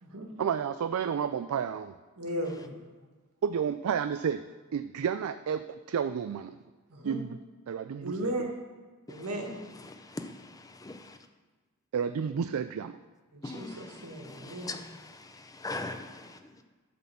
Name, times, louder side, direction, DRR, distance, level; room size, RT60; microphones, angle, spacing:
voice 1, 0.4-1.9 3.4-4.4 4.7-6.5 7.0-7.3 7.7-8.5 11.9-13.0, right 7 dB, 70° right, 0.3 m, -31 dB
voice 2, 2.2-2.8 6.9-7.2 8.0-8.4 9.1-9.6 13.3-14.8, equal, 90° right, 1.7 m, -36 dB
voice 3, 10.8-11.2 13.4-13.9 14.2-15.3 15.5-16.4, left 2 dB, 15° left, 0.5 m, -40 dB
12.0 x 4.2 x 6.9 m
head